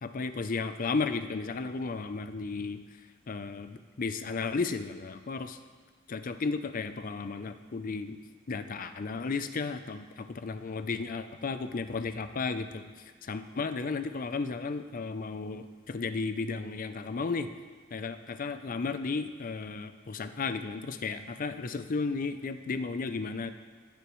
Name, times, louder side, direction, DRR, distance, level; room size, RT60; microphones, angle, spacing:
voice 1, 0.0-2.8 3.3-5.6 6.1-8.2 8.5-12.8 13.3-17.5 17.9-23.5, left 4 dB, 45° left, 10 dB, 0.5 m, -34 dB
18.5 x 6.9 x 3.1 m, 1.5 s
head